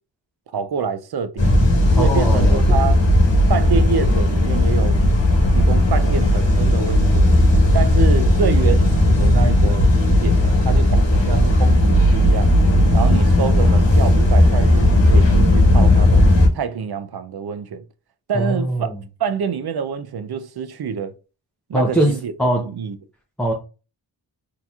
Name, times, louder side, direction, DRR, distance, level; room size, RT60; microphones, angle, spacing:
voice 1, 0.5-1.5 2.0-3.1 3.5-5.0 5.5-7.3 7.7-12.6 12.9-16.3 16.5-17.8 18.3-18.9 19.2-21.1 21.7-22.3 22.6-23.0, right 6 dB, 55° right, 0.5 m, -26 dB
sound 1, 1.4-16.5, left 1 dB, 65° left, 1.2 m, -15 dB
voice 2, 1.9-2.8 18.3-18.8 21.7-22.1 22.4-22.6 23.4-23.5, right 1 dB, ahead, 0.6 m, -20 dB
3.8 x 2.8 x 2.3 m
wide cardioid pair, 80°, 47 cm